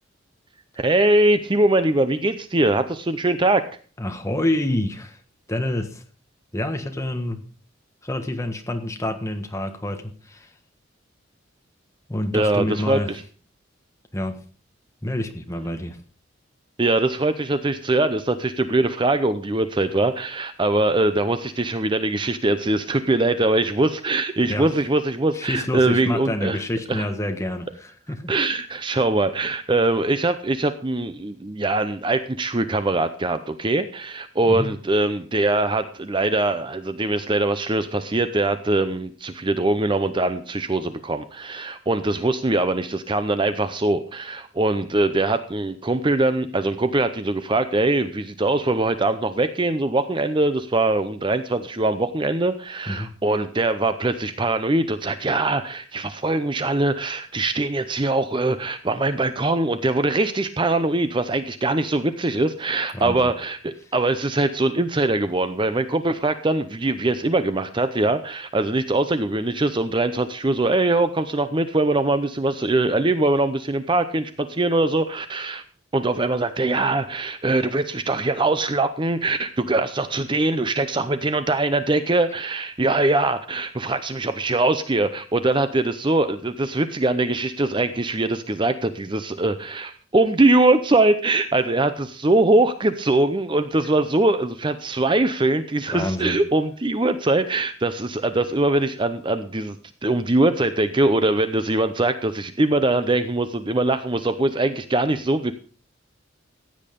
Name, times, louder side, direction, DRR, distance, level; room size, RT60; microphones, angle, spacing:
voice 1, 0.8-3.7 12.3-13.0 16.8-26.6 26.9-27.1 28.3-75.6 75.9-99.8 100.0-105.5, right 2 dB, 25° right, 0.6 m, -22 dB
voice 2, 4.0-5.2 5.5-6.0 6.5-7.5 8.0-10.5 12.1-13.1 14.1-14.4 15.0-16.0 24.4-24.7 25.3-28.3 34.4-34.7 52.9-53.1 62.9-63.3 95.9-96.4, left 1 dB, 15° left, 1.4 m, -27 dB
15.5 x 8.9 x 5.2 m
head